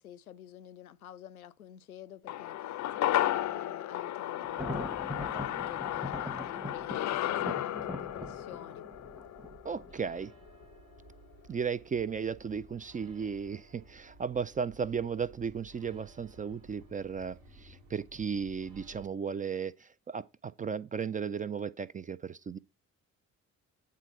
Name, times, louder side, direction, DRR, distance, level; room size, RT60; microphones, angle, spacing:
voice 1, 0.0-8.9, left 10 dB, 85° left, 0.5 m, -50 dB
sound 1, 2.3-10.8 11.1-11.2, left 13 dB, 40° left, 0.6 m, -34 dB
Thunder, 4.4-10.2, left 1 dB, ahead, 0.9 m, -42 dB
sound 2, 8.9-19.1, right 2 dB, 85° right, 1.3 m, -56 dB
voice 2, 9.6-10.3 11.5-22.6, right 6 dB, 20° right, 0.4 m, -35 dB
9.4 x 3.8 x 6.4 m
figure-of-eight pair, 45°, 42 cm